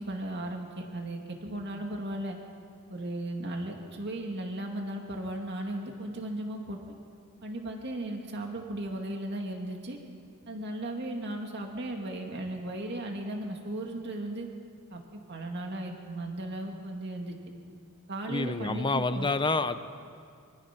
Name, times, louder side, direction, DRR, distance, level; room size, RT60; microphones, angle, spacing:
voice 1, 0.0-2.4 2.9-6.8 7.4-10.0 10.5-14.5 14.9-17.4 18.1-19.3, right 1 dB, 50° right, 2 dB, 2.3 m, -36 dB
voice 2, 18.3-19.8, left 3 dB, 20° left, 11 dB, 0.8 m, -28 dB
24.5 x 24.0 x 6.0 m, 2.3 s
head